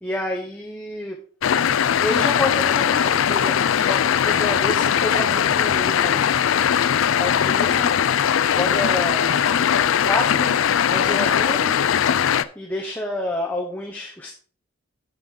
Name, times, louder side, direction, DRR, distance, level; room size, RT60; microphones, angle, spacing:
voice 1, 0.0-1.2 2.0-6.4 7.0-8.1 8.5-9.4 10.0-10.6 10.9-11.8 12.5-14.3, left 1 dB, 10° left, -1 dB, 0.9 m, -29 dB
sound 1, 1.4-12.4, left 8 dB, 75° left, 0.4 m, -20 dB
7.5 x 6.5 x 3.7 m, 0.43 s
head